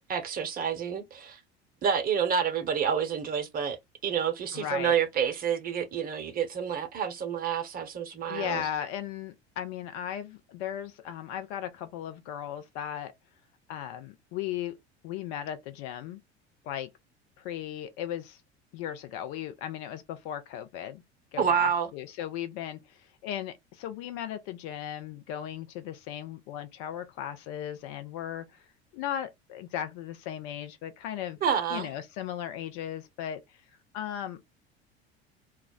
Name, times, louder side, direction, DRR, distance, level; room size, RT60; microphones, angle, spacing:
voice 1, 0.1-1.4 1.8-8.6 21.4-21.9 31.4-31.9, right 7 dB, 25° right, 0.8 m, -28 dB
voice 2, 4.5-5.0 8.3-13.1 13.7-14.8 15.0-16.2 16.6-16.9 17.4-18.4 18.7-21.0 21.3-28.6 28.9-31.4 31.7-33.6 33.9-34.4, left 10 dB, 50° left, 0.7 m, -36 dB
2.3 x 2.0 x 3.6 m
figure-of-eight pair, 70°, 33 cm